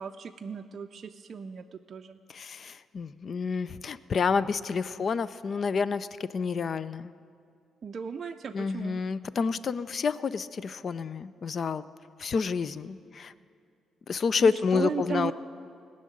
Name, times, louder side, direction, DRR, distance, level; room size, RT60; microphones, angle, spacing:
voice 1, 0.0-2.2 4.8-4.9 7.8-9.0 14.4-15.3, right 6 dB, 45° right, 4 dB, 0.4 m, -36 dB
voice 2, 2.3-7.1 8.5-11.8 12.2-13.3 14.1-15.3, left 5 dB, 45° left, 16 dB, 0.4 m, -29 dB
17.5 x 6.5 x 9.3 m, 2.4 s
cardioid pair, 90°, 0 cm